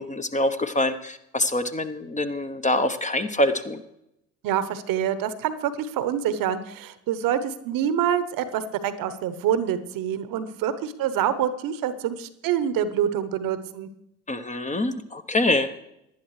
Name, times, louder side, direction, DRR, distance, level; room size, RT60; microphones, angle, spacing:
voice 1, 0.0-3.8 14.3-15.9, left 1 dB, 15° left, 9 dB, 0.8 m, -25 dB
voice 2, 4.4-13.9, right 9 dB, 50° right, 13 dB, 1.0 m, -26 dB
18.5 x 11.0 x 3.2 m, 0.83 s
figure-of-eight pair, 55°, 43 cm